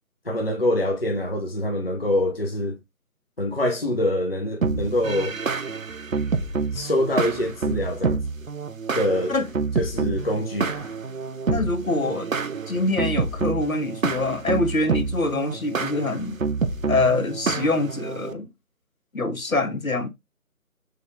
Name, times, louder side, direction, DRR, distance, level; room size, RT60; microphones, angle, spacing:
voice 1, 0.3-2.8 3.4-5.4 6.7-8.2 8.9-9.3 9.7-11.0, left 1 dB, 40° left, 0.7 m, -25 dB
sound 1, 4.6-18.3, right 4 dB, 60° right, 0.6 m, -28 dB
voice 2, 11.5-12.3 12.7-16.4 16.9-18.5 19.1-20.1, left 2 dB, 65° left, 1.0 m, -25 dB
6.2 x 3.4 x 2.3 m
figure-of-eight pair, 160°, 45 cm